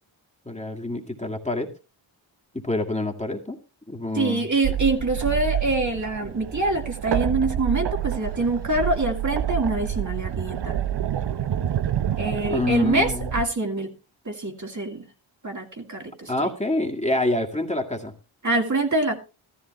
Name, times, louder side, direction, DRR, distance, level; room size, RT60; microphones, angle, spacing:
voice 1, 0.5-1.7 2.5-3.6 3.9-4.5 12.5-13.4 16.3-18.1, left 2 dB, 15° left, 0 dB, 2.1 m, -26 dB
voice 2, 4.1-10.8 12.2-13.9 14.3-15.0 15.4-16.5 18.4-19.2, right 2 dB, 35° right, 2 dB, 2.4 m, -25 dB
sound 1, 4.6-13.4, right 10 dB, 55° right, 0.8 m, -28 dB
14.0 x 13.5 x 3.0 m, 0.29 s
cardioid pair, 50°, 48 cm